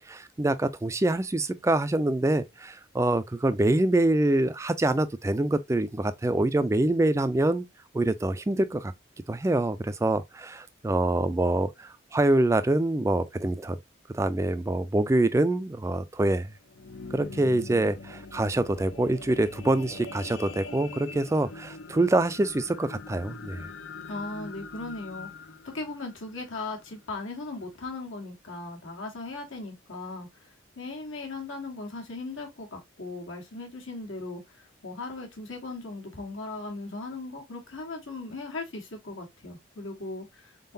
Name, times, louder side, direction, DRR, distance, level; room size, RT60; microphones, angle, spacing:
voice 1, 0.1-7.6 7.9-8.9 9.3-13.8 14.1-16.5 17.1-23.6, right 2 dB, 15° right, 0.3 m, -25 dB
sound 1, 16.5-27.0 27.6-27.7, left 3 dB, 65° left, 0.5 m, -43 dB
voice 2, 24.1-25.5 25.7-40.7, left 3 dB, 80° left, 1.5 m, -38 dB
3.8 x 3.7 x 2.6 m
head